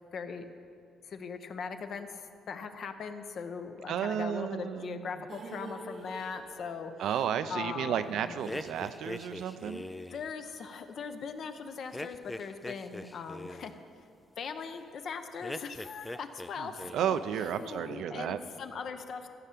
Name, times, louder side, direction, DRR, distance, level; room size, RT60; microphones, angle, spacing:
voice 1, 0.1-0.5 1.0-7.2 7.5-8.4 10.1-13.7 14.4-17.1 17.5-19.3, left 5 dB, 50° left, 8 dB, 0.8 m, -40 dB
voice 2, 3.9-5.1 7.0-9.8 16.6-16.7 16.9-18.4, right 9 dB, 70° right, 11 dB, 0.5 m, -32 dB
sound 1, 5.3-9.4 9.7-9.8 10.1-10.2, right 2 dB, 40° right, 0.8 m, -48 dB
sound 2, 8.4-10.3 11.9-13.8 15.4-16.5 16.8-17.3, left 1 dB, 10° left, 0.3 m, -41 dB
14.5 x 5.7 x 8.4 m, 2.4 s
cardioid pair, 130°, 0 cm